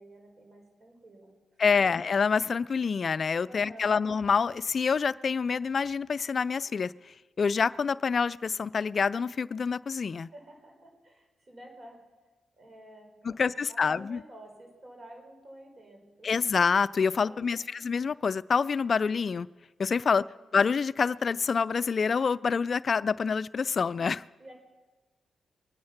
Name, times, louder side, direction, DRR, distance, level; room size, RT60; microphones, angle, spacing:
voice 1, 0.0-1.3 3.4-4.0 10.3-12.0 12.6-16.3 17.2-17.7 20.0-20.5 24.4-24.6, right 1 dB, 45° right, 5.0 m, -51 dB
voice 2, 1.6-10.3 13.2-14.2 16.2-19.5 19.8-20.2 20.5-24.2, left 5 dB, 55° left, 0.4 m, -27 dB
23.0 x 9.5 x 5.9 m
supercardioid pair, 45°, 0 cm